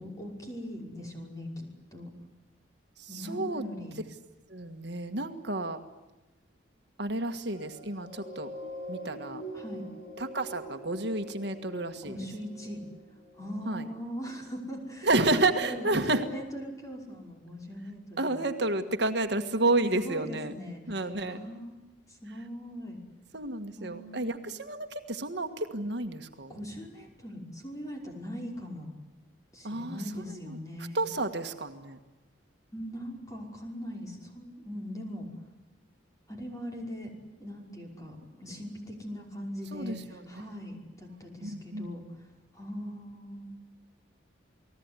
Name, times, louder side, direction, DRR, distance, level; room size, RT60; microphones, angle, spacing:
voice 1, 0.0-2.1 3.1-4.0 9.5-9.8 12.0-12.8 13.3-15.1 15.6-18.3 20.0-20.8 21.3-21.8 22.1-23.0 23.8-24.5 26.5-29.0 29.5-31.0 32.7-35.3 36.3-37.1 37.4-42.3 42.5-43.5, equal, 15° left, 1 dB, 5.5 m, -40 dB
voice 2, 3.0-3.6 4.5-5.8 7.0-8.5 8.9-9.4 10.2-12.2 13.7-13.9 15.0-16.3 18.2-20.5 20.9-21.4 22.3-22.4 23.3-26.6 29.6-32.0 39.7-40.4 41.4-41.9, right 2 dB, 60° right, 6 dB, 1.7 m, -31 dB
sound 1, 7.3-14.0 14.6-14.7, equal, 50° left, 7.1 m, -44 dB
30.0 x 19.5 x 9.9 m, 1.1 s
head